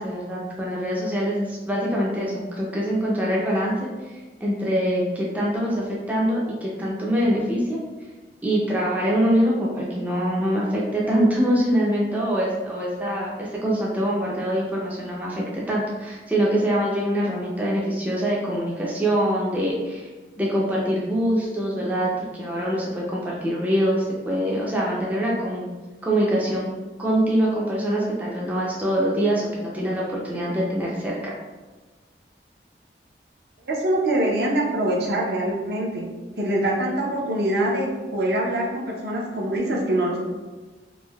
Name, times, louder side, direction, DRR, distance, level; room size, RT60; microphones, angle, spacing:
voice 1, 0.0-7.8 8.4-20.1 20.4-25.7 26.0-26.7 27.0-31.3, equal, 10° right, -5 dB, 0.3 m, -24 dB
voice 2, 33.7-36.1 36.4-40.2, right 1 dB, 60° right, -1 dB, 0.5 m, -24 dB
3.2 x 2.6 x 2.2 m, 1.3 s
head